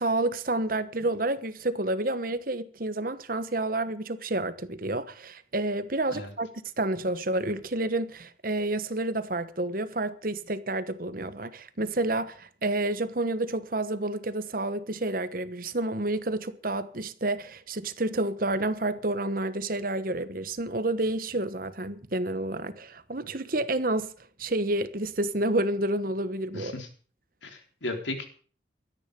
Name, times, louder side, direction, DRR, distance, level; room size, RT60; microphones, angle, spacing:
voice 1, 0.0-24.1 24.4-26.8, right 2 dB, 50° right, 1.2 m, -29 dB
voice 2, 26.5-26.9 27.4-28.3, left 2 dB, 80° left, 3.8 m, -35 dB
17.5 x 13.0 x 5.3 m
head